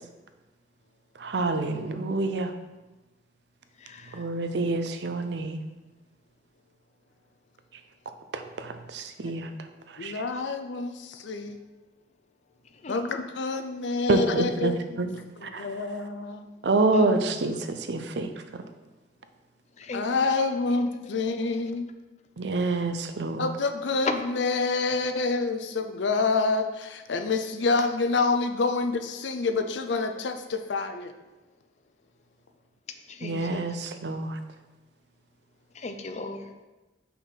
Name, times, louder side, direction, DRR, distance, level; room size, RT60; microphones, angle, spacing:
voice 1, 1.2-2.5 4.1-5.6 8.3-9.5 9.9-10.2 14.1-15.1 15.4-15.8 16.6-18.6 22.4-23.5 33.2-34.4, right 3 dB, 70° right, 8 dB, 0.6 m, -27 dB
voice 2, 3.8-4.2 12.8-13.1 16.9-17.1 19.8-20.0 24.1-24.2 33.1-33.7 35.7-36.5, left 3 dB, 40° left, 7 dB, 0.5 m, -34 dB
voice 3, 10.0-11.6 12.9-15.0 15.4-16.5 19.9-21.8 23.4-31.1, left 3 dB, 85° left, 7 dB, 0.6 m, -27 dB
5.7 x 4.1 x 5.6 m, 1.1 s
head